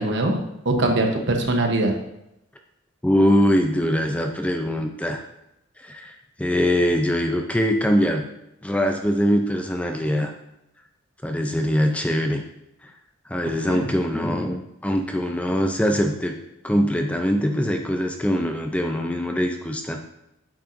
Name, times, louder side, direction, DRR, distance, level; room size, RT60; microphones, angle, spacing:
voice 1, 0.0-1.9 13.6-13.9, right 2 dB, 60° right, 3 dB, 1.0 m, -22 dB
voice 2, 3.0-5.2 5.8-6.1 6.4-8.3 8.6-10.3 11.2-12.4 12.8-12.9 13.3-16.3 16.6-20.1, equal, 5° left, 3 dB, 0.4 m, -22 dB
8.6 x 5.6 x 2.6 m, 0.85 s
head